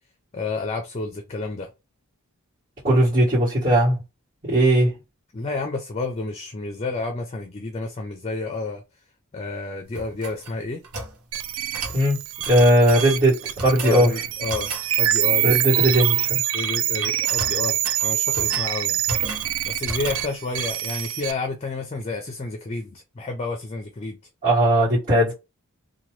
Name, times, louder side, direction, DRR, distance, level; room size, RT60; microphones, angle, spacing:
voice 1, 0.3-1.7 5.3-8.8 9.3-10.8 13.8-15.6 16.5-19.0 19.7-24.2, left 3 dB, 30° left, 0.4 m, -30 dB
voice 2, 2.8-4.0 4.4-4.9 11.9-12.2 12.5-14.1 15.4-16.4 24.4-25.3, right 1 dB, 45° right, 1.6 m, -18 dB
sound 1, 9.9-11.2 11.7-12.0 12.4-13.1 13.6-14.0 14.5-14.9 15.7-16.3 16.6-16.8 17.0-18.7 19.1-19.5 19.8-20.3, right 3 dB, 90° right, 0.8 m, -34 dB
sound 2, 11.3-21.3, right 13 dB, 65° right, 0.3 m, -25 dB
2.9 x 2.2 x 3.1 m
head